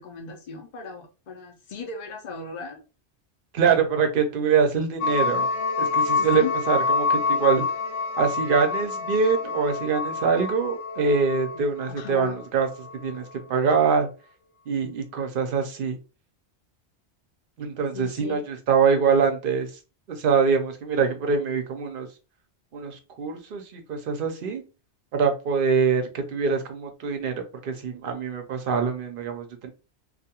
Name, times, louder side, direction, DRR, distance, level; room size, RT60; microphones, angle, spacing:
voice 1, 0.0-2.8 3.7-3.9 6.2-6.5 11.9-12.4 17.9-18.4, left 5 dB, 50° left, 1 dB, 0.6 m, -36 dB
voice 2, 3.5-5.5 5.8-7.6 8.2-14.1 14.7-16.0 17.6-19.7 20.1-22.1 22.7-24.6 25.1-29.7, right 5 dB, 60° right, 5 dB, 0.7 m, -24 dB
sound 1, 5.0-13.1, left 4 dB, 80° left, 0.9 m, -27 dB
2.3 x 2.3 x 2.8 m, 0.31 s
omnidirectional pair, 1.2 m